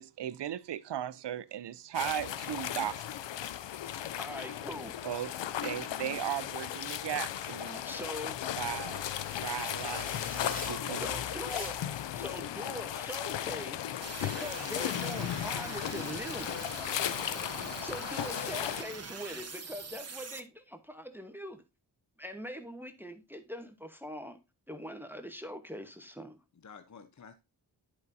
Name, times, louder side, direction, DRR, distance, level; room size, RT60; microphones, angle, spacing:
voice 1, 0.0-3.1 5.0-5.3 5.6-7.8 8.6-9.0 9.4-10.6 10.9-11.0, right 11 dB, 70° right, 0.6 m, -36 dB
sound 1, 1.9-18.8, left 11 dB, 80° left, 0.5 m, -36 dB
voice 2, 4.2-5.0 7.8-8.4 11.0-11.8 12.1-13.9 14.2-16.6 17.8-21.6 22.2-24.4 24.7-26.4, equal, 5° right, 1.0 m, -42 dB
sound 2, 7.6-12.0, equal, 20° left, 3.5 m, -46 dB
voice 3, 10.6-11.9 12.9-13.1 26.5-27.3, left 5 dB, 40° left, 0.9 m, -48 dB
sound 3, 14.0-20.4, right 4 dB, 35° right, 1.0 m, -43 dB
10.5 x 5.2 x 2.6 m
wide cardioid pair, 75°, 43 cm